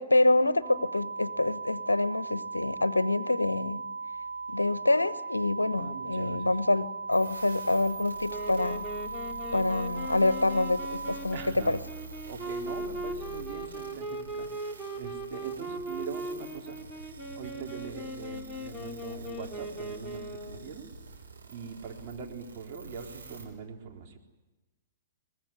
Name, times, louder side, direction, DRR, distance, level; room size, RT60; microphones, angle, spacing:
voice 1, 0.0-3.8 4.5-8.8 9.5-11.8, left 2 dB, 85° left, 17 dB, 0.9 m, -26 dB
sound 1, 0.6-11.2, right 4 dB, 60° right, 2.9 m, -38 dB
voice 2, 5.7-6.5 11.3-11.8 12.2-16.9 17.4-20.9 21.5-24.2, right 6 dB, 40° right, 1 dB, 3.9 m, -42 dB
sound 2, 7.1-23.4, right 2 dB, 75° right, 5.8 m, -47 dB
Wind instrument woodwind instrument, 8.3-20.7, right 1 dB, ahead, 3.1 m, -39 dB
23.5 x 20.5 x 9.7 m, 1.1 s
figure-of-eight pair, 110°, 0 cm